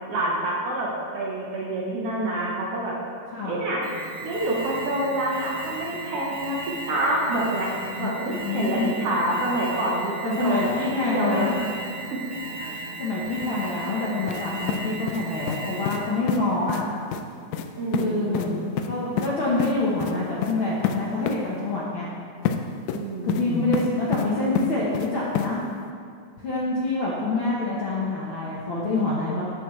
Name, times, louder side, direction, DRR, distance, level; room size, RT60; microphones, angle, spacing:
voice 1, 0.1-3.0 3.4-3.8 4.2-6.6 6.9-7.7 8.0-11.6 12.1-12.2 17.8-18.6 22.9-23.8, right 1 dB, 60° right, -4 dB, 1.8 m, -27 dB
Alarm, 3.8-16.2, right 3 dB, 10° right, 0.5 m, -37 dB
voice 2, 8.4-9.0 10.2-11.5 12.6-16.8 17.9-22.1 23.2-25.6 26.4-29.5, left 2 dB, 60° left, -6 dB, 1.4 m, -26 dB
sound 1, 14.3-14.4 14.7-15.6 15.9-16.0 16.3-16.4 16.7-16.8 17.1-17.2 17.5-17.7 17.9-18.1 18.3-18.5 18.8-19.3 19.6-19.7 20.0-20.1 20.4-20.5 20.8-21.0 21.3-21.4 22.5-22.6 22.9-23.4 23.7-24.3 24.6-25.1 25.4-25.5, left 9 dB, 80° left, 1.5 m, -27 dB
12.0 x 7.2 x 3.2 m, 2.2 s
omnidirectional pair, 3.5 m